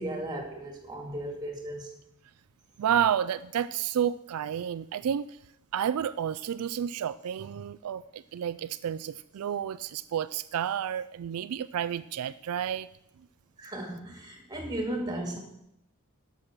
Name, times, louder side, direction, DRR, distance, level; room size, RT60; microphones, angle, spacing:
voice 1, 0.0-1.9 13.6-15.4, right 1 dB, 20° right, 2 dB, 2.1 m, -35 dB
voice 2, 2.8-5.4 5.7-12.9, right 9 dB, 80° right, 13 dB, 0.3 m, -30 dB
11.5 x 6.3 x 6.6 m, 0.81 s
head